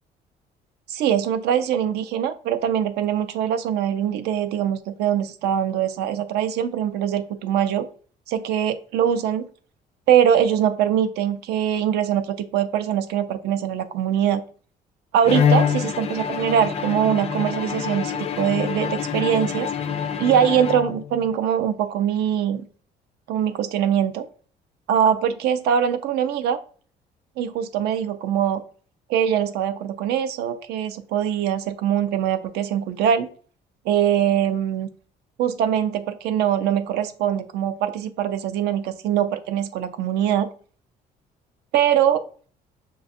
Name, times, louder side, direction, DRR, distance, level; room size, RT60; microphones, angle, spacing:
voice 1, 0.9-7.9 8.3-9.5 10.1-14.4 15.1-19.7 20.2-22.6 23.3-24.2 24.9-26.6 27.4-28.6 29.1-33.3 33.9-34.9 35.4-40.5 41.7-42.2, right 9 dB, 75° right, 10 dB, 0.5 m, -22 dB
Bowed string instrument, 15.2-21.3, left 7 dB, 40° left, 0.3 m, -25 dB
6.4 x 2.2 x 2.5 m, 0.43 s
cardioid pair, 110°, 17 cm